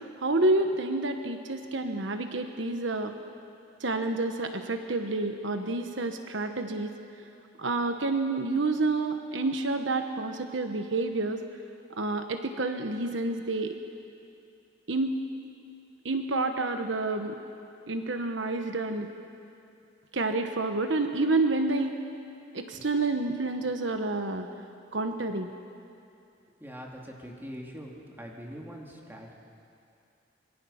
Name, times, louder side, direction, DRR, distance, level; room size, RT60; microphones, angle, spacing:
voice 1, 0.2-3.1 3.8-6.9 7.6-11.4 12.0-13.7 14.9-15.2 16.0-17.4 17.9-19.1 20.1-22.0 22.5-24.5 24.9-25.5, right 2 dB, 75° right, 6 dB, 1.2 m, -29 dB
voice 2, 26.6-29.3, equal, 10° right, -1 dB, 2.8 m, -43 dB
25.5 x 22.5 x 5.7 m, 2.6 s
head